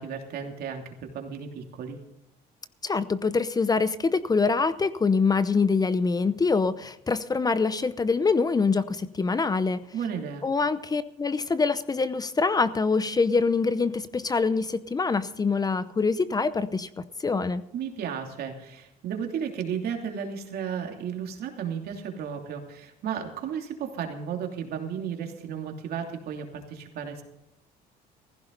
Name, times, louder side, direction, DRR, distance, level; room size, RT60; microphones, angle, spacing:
voice 1, 0.0-2.0 9.9-10.4 17.7-27.2, right 7 dB, 70° right, 3 dB, 3.0 m, -34 dB
voice 2, 2.8-9.8 10.4-17.6, left 4 dB, 20° left, 14 dB, 0.7 m, -25 dB
16.0 x 15.5 x 4.0 m, 0.83 s
cardioid pair, 110°, 17 cm